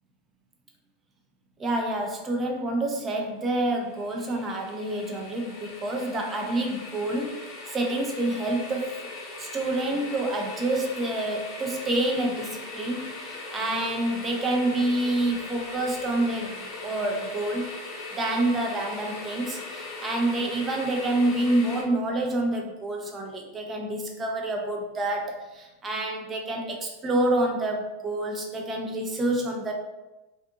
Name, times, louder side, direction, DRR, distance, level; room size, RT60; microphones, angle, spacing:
voice 1, 1.6-7.4 7.7-8.9 9.4-17.8 18.1-29.7, right 1 dB, 25° right, 1 dB, 0.5 m, -28 dB
sound 1, 3.7-21.8, left 3 dB, 45° left, 0.6 m, -39 dB
2.5 x 2.5 x 2.6 m, 1.1 s
figure-of-eight pair, 90°, 0 cm